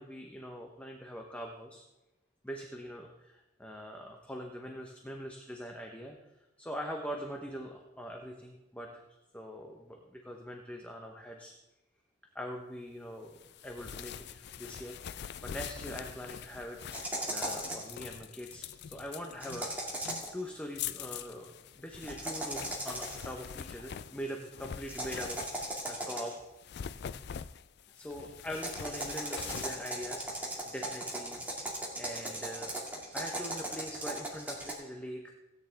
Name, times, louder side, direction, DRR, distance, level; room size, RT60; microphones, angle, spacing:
voice 1, 0.0-1.8 2.4-6.2 6.6-9.0 9.3-11.5 12.3-16.8 17.3-20.1 20.3-26.3 27.9-31.4 32.0-32.8 33.1-35.2, equal, 5° left, 1 dB, 0.9 m, -43 dB
sound 1, 13.4-26.0 26.5-30.8, left 8 dB, 60° left, 0.4 m, -44 dB
sound 2, 16.9-17.9 19.4-20.4 22.0-23.3 24.9-26.5 28.5-34.7, right 1 dB, 10° right, 2.2 m, -38 dB
16.5 x 9.4 x 3.4 m, 0.99 s
head